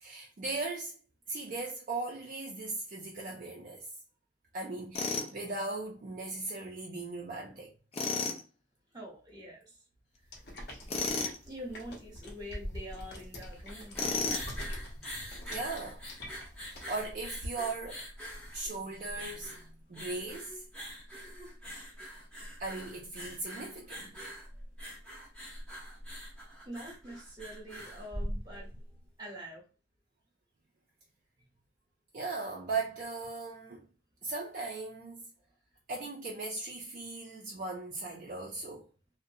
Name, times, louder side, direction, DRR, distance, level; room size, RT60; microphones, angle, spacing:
voice 1, 0.0-0.9 1.3-3.9 4.5-7.7 13.0-13.1 15.5-16.0 16.6-18.0 18.5-20.6 22.6-24.2 32.1-33.9 34.2-35.2 35.9-38.9, right 3 dB, 45° right, 0.4 m, -38 dB
Tools, 5.0-5.3 7.9-8.4 10.9-11.4 14.0-14.6, left 3 dB, 35° left, 0.4 m, -32 dB
voice 2, 8.9-9.8 11.4-14.0 26.6-28.7 29.2-29.6, equal, 25° right, 1.0 m, -45 dB
sound 1, 10.3-17.5, left 1 dB, 60° left, 0.8 m, -46 dB
sound 2, 13.5-28.8, equal, 5° left, 0.8 m, -43 dB
2.5 x 2.1 x 2.6 m
head